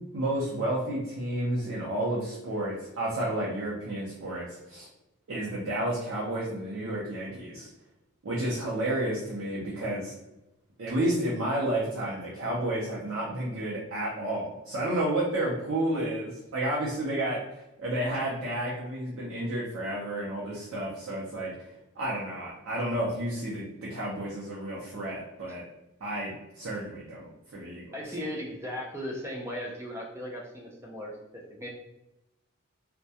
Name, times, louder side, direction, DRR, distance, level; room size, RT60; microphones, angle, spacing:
voice 1, 0.1-4.9 5.3-7.7 8.2-10.1 10.8-21.5 22.0-25.6 26.0-28.0, right 1 dB, 75° right, -5 dB, 0.5 m, -31 dB
voice 2, 27.9-31.7, equal, 10° right, -1 dB, 0.4 m, -37 dB
2.2 x 2.1 x 2.7 m, 0.92 s
head